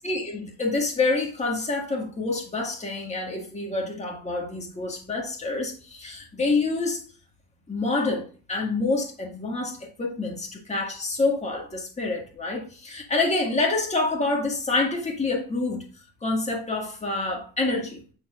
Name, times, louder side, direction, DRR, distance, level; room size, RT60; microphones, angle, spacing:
voice 1, 0.0-7.0 7.7-15.8 16.2-18.0, left 3 dB, 20° left, 1.8 m, -27 dB
8.7 x 4.4 x 2.4 m
cardioid pair, 105°, 36 cm